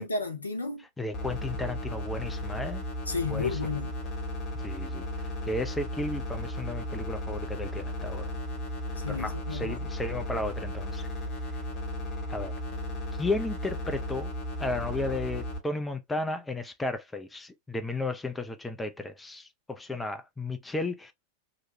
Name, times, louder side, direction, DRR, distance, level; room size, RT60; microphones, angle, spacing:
voice 1, 0.0-0.8 3.1-3.9 9.0-9.8, left 4 dB, 80° left, 0.6 m, -32 dB
voice 2, 1.0-2.8 3.3-3.6 4.6-8.3 9.1-11.1 12.3-12.5 13.2-14.3 14.6-21.1, left 2 dB, 10° left, 0.4 m, -34 dB
sound 1, 1.1-15.6, left 1 dB, 40° left, 1.0 m, -35 dB
2.9 x 2.2 x 2.6 m
figure-of-eight pair, 90°, 0 cm